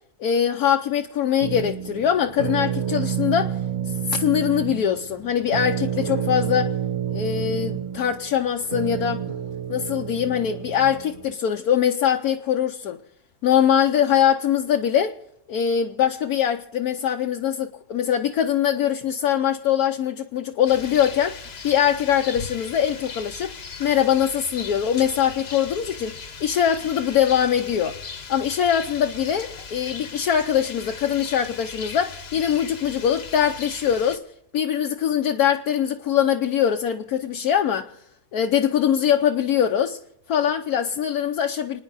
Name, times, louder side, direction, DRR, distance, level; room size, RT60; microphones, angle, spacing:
voice 1, 0.2-3.6 3.9-6.7 7.1-9.2 9.7-13.0 13.4-15.2 15.5-23.5 23.8-28.0 28.3-34.2 34.5-37.9 38.3-40.0 40.3-41.8, left 9 dB, 70° left, 1.2 m, -22 dB
sound 1, 1.4-11.3, right 9 dB, 45° right, 1.2 m, -29 dB
Rain, 20.7-34.2, left 5 dB, 45° left, 1.2 m, -38 dB
29.0 x 9.8 x 4.0 m
omnidirectional pair, 1.7 m